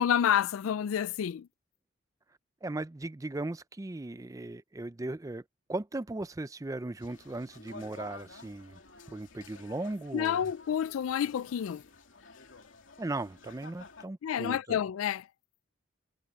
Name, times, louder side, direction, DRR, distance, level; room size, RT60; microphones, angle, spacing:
voice 1, 0.0-1.5 10.1-11.8 14.2-15.3, left 9 dB, 90° left, 0.3 m, -29 dB
voice 2, 2.6-5.4 5.7-8.8 9.1-10.4 13.0-14.8, right 2 dB, 15° right, 0.4 m, -37 dB
sound 1, 7.0-14.1, left 3 dB, 70° left, 2.8 m, -52 dB
head